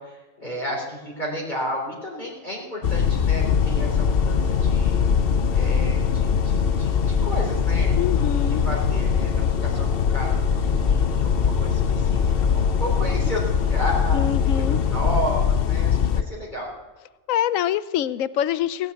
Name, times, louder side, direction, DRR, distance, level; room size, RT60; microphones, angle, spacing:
voice 1, 0.0-5.0 5.5-8.3 8.6-9.9 10.1-14.2 14.6-16.7, equal, 35° left, -4 dB, 3.8 m, -32 dB
sound 1, 2.8-16.2, left 8 dB, 55° left, 0.8 m, -22 dB
sound 2, 3.4-15.1, right 1 dB, 25° right, 1.7 m, -32 dB
voice 2, 8.0-8.6 14.1-14.8 17.3-18.9, left 10 dB, 80° left, 16 dB, 1.0 m, -25 dB
18.5 x 6.5 x 9.5 m, 1.2 s
omnidirectional pair, 1.4 m